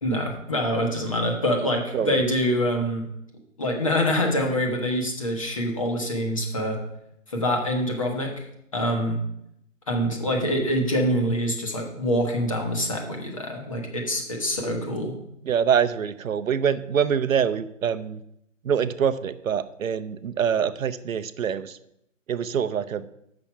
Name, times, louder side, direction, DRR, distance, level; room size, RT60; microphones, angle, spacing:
voice 1, 0.0-3.0 3.6-6.8 7.3-8.4 8.7-9.2 9.9-15.1, equal, 25° left, 2 dB, 1.0 m, -25 dB
voice 2, 15.4-18.2 18.6-21.8 22.3-23.0, right 7 dB, 85° right, 13 dB, 0.7 m, -25 dB
7.2 x 6.1 x 5.6 m, 0.77 s
hypercardioid pair, 180°, 40 cm